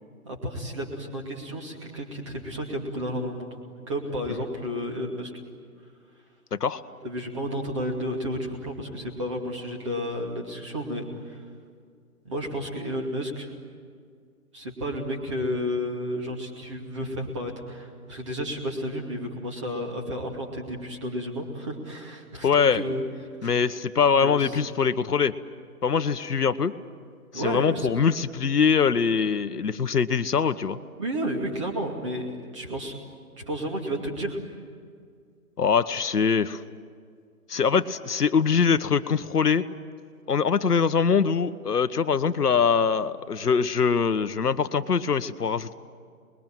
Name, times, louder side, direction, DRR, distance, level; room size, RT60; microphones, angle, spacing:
voice 1, 0.2-3.6 3.9-5.3 7.0-11.4 12.2-13.5 14.5-23.0 23.4-23.7 24.2-24.5 27.3-27.9 31.0-32.9 33.4-34.4, equal, 20° right, 1 dB, 2.5 m, -32 dB
voice 2, 22.4-22.8 23.4-25.3 25.8-26.7 27.3-30.8 35.6-36.6 37.5-39.6 40.3-45.7, left 6 dB, 80° left, 11 dB, 1.3 m, -23 dB
29.0 x 21.5 x 9.1 m, 2.1 s
hypercardioid pair, 175°, 46 cm